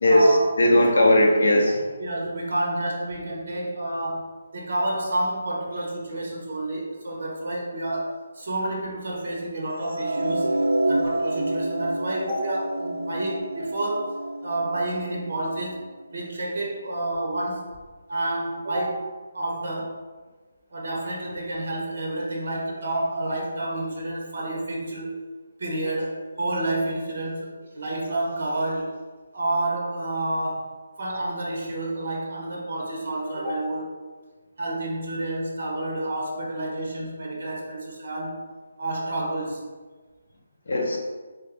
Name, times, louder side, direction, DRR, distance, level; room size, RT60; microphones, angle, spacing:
voice 1, 0.0-0.5 0.9-1.1 2.0-10.5 10.9-15.8 16.1-17.7 18.1-19.1 19.3-20.0 20.7-25.1 25.6-28.9 29.3-30.7 31.0-33.9 34.6-38.5 38.8-39.6, right 1 dB, 40° right, -2 dB, 1.1 m, -29 dB
voice 2, 0.6-1.8 40.7-41.0, left 1 dB, 45° left, 0 dB, 0.6 m, -18 dB
sound 1, 9.8-16.0, right 1 dB, 75° right, 0.4 m, -28 dB
3.8 x 3.3 x 3.4 m, 1.3 s
hypercardioid pair, 180°, 0 cm